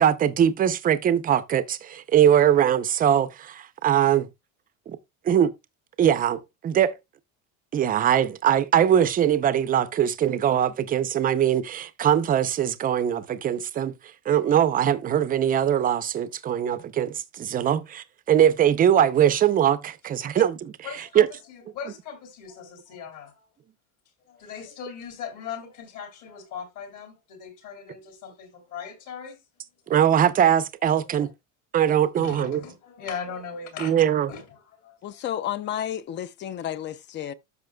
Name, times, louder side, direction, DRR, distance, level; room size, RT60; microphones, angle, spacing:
voice 1, 0.0-4.3 4.9-5.0 5.2-5.5 6.0-6.9 7.7-13.9 14.3-20.7 21.1-21.3 29.9-31.3 31.7-32.6 33.8-34.3, right 10 dB, 25° right, 0.5 m, -21 dB
voice 2, 20.8-23.5 24.3-29.4 31.0-31.1 32.1-33.9 34.3-35.0, left 7 dB, 50° left, 3.1 m, -39 dB
voice 3, 35.0-37.3, left 10 dB, 30° left, 0.4 m, -31 dB
13.0 x 5.7 x 2.2 m
cardioid pair, 160°, 38 cm